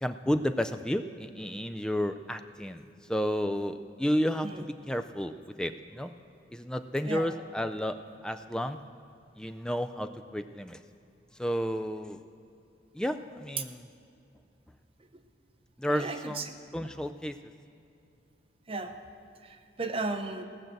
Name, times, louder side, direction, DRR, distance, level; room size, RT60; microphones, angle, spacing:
voice 1, 0.0-5.3 5.6-6.1 6.5-8.8 9.4-10.8 11.4-12.2 12.9-13.9 15.8-17.4, equal, 5° left, 8 dB, 0.3 m, -32 dB
voice 2, 15.9-16.5 18.7-18.9 19.4-20.4, right 3 dB, 30° right, 6 dB, 0.7 m, -35 dB
17.5 x 6.6 x 7.5 m, 2.5 s
head